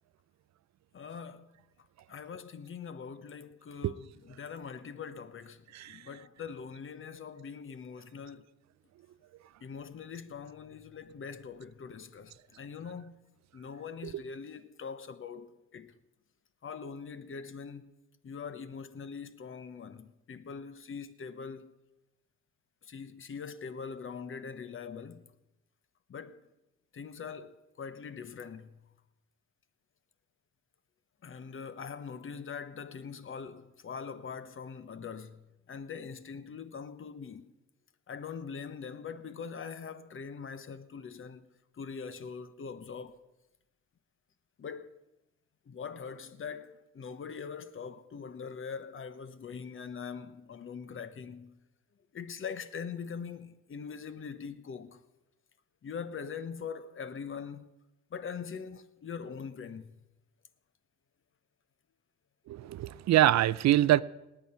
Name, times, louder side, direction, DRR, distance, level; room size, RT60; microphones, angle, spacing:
voice 1, 0.9-1.6 2.1-8.5 9.6-16.0 16.6-17.9 18.2-21.7 22.8-25.3 26.1-26.4 26.9-28.9 31.2-37.5 38.1-41.5 41.8-43.2 44.6-45.0 45.7-51.6 52.1-55.0 55.8-57.7 58.1-60.0, left 6 dB, 45° left, 1.0 m, -42 dB
voice 2, 62.5-64.0, right 14 dB, 65° right, 0.5 m, -25 dB
18.5 x 8.9 x 5.6 m
cardioid pair, 90°, 30 cm